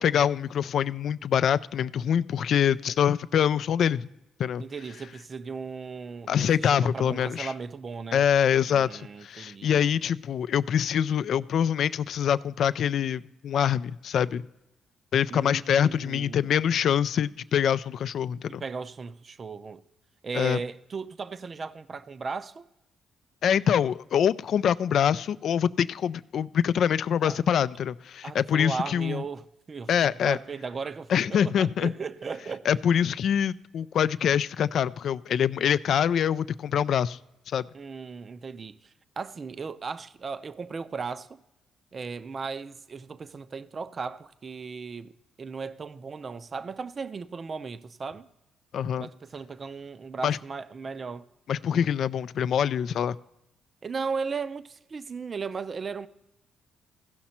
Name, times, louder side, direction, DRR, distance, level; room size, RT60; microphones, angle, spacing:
voice 1, 0.0-4.1 4.4-4.6 6.3-7.5 8.1-14.4 15.1-18.6 20.3-20.6 23.4-29.2 29.9-30.4 31.1-31.9 32.7-37.2 37.5-37.6 48.7-49.1 50.2-50.4 51.5-53.2, left 8 dB, 65° left, 0.3 m, -25 dB
voice 2, 4.6-8.3 8.6-9.9 15.3-16.5 18.5-19.8 20.2-22.7 27.2-27.4 28.2-29.9 30.2-32.7 37.7-41.4 41.9-45.1 45.4-48.3 49.0-51.3 53.8-56.1, right 5 dB, 40° right, 0.5 m, -36 dB
16.0 x 6.0 x 4.3 m
cardioid pair, 90°, 0 cm